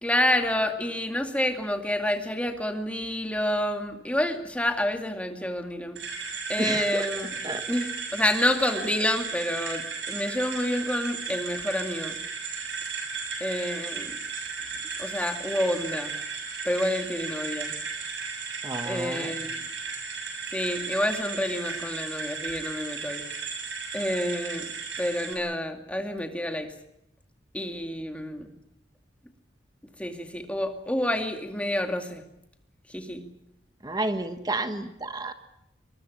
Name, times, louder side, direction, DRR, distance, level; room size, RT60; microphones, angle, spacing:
voice 1, 0.0-6.0 6.5-7.4 7.7-12.2 13.4-14.2 15.0-16.1 16.6-17.7 18.9-19.6 20.5-23.2 23.9-24.7 25.0-26.7 27.5-28.5 30.0-32.2 32.9-33.3, left 1 dB, 5° left, 5 dB, 2.2 m, -28 dB
sound 1, 6.0-25.3, right 5 dB, 90° right, 7.1 m, -35 dB
voice 2, 6.6-7.1 7.4-7.6 18.6-19.3 33.8-35.3, right 2 dB, 20° right, 9 dB, 1.2 m, -31 dB
23.5 x 21.0 x 8.5 m, 0.81 s
head